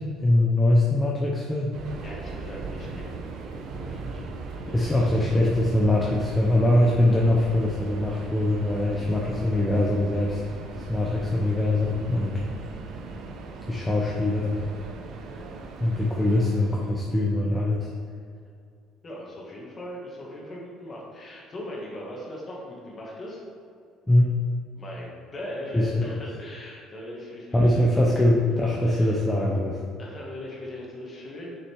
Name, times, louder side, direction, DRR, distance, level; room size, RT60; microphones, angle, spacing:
voice 1, 0.0-1.8 4.7-12.4 13.7-14.6 15.8-17.9 24.1-24.3 25.7-26.2 27.5-29.8, left 1 dB, 5° left, -3 dB, 0.7 m, -22 dB
Subway metro underground, 1.7-17.1, right 3 dB, 50° right, 0.7 m, -38 dB
voice 2, 2.0-3.2 3.7-4.2 4.5-5.2 19.0-23.4 24.7-28.0 28.8-29.2 30.0-31.6, left 1 dB, 25° left, -3 dB, 1.7 m, -39 dB
6.8 x 5.7 x 4.6 m, 2.4 s
cardioid pair, 160°, 0 cm